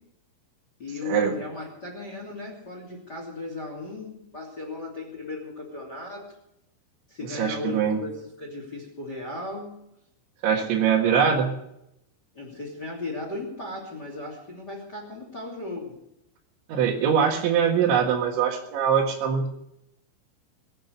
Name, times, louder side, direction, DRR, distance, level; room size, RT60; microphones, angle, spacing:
voice 1, 0.8-6.3 7.1-9.7 12.3-16.0, left 2 dB, 25° left, 1 dB, 2.6 m, -36 dB
voice 2, 7.2-8.0 10.4-11.5 16.7-19.5, right 7 dB, 70° right, 3 dB, 3.8 m, -23 dB
22.0 x 9.1 x 6.8 m, 0.81 s
omnidirectional pair, 5.8 m